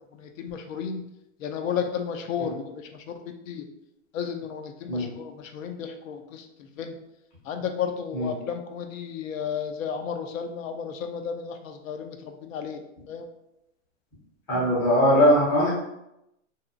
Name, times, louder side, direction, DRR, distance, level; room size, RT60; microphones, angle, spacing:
voice 1, 0.2-1.0 1.4-3.2 3.5-3.7 4.1-6.9 7.4-12.8 13.1-13.3 14.5-14.6, left 7 dB, 85° left, 5 dB, 0.5 m, -33 dB
voice 2, 14.5-15.7, equal, 10° left, -9 dB, 0.4 m, -20 dB
2.6 x 2.1 x 2.4 m, 0.85 s
hypercardioid pair, 155°, 38 cm